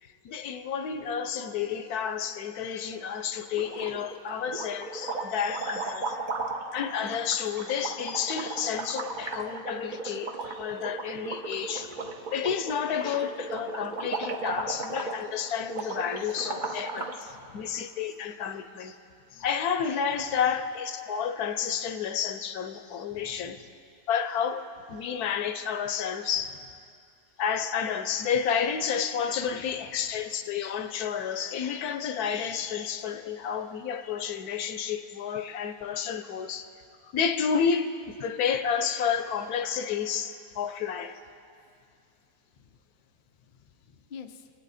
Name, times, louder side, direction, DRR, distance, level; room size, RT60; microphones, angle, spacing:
voice 1, 0.0-6.2 6.7-11.9 12.3-19.0 19.3-23.6 24.1-26.6 27.4-36.7 37.0-41.2, left 7 dB, 70° left, 9 dB, 1.2 m, -30 dB
sound 1, 3.5-4.2 4.5-17.2, right 3 dB, 35° right, 0.9 m, -36 dB
voice 2, 17.3-17.7 23.1-23.6 29.5-29.6 42.6-42.8 43.5-44.5, left 6 dB, 55° left, 6 dB, 0.5 m, -49 dB
24.5 x 8.9 x 4.2 m, 2.6 s
omnidirectional pair, 1.7 m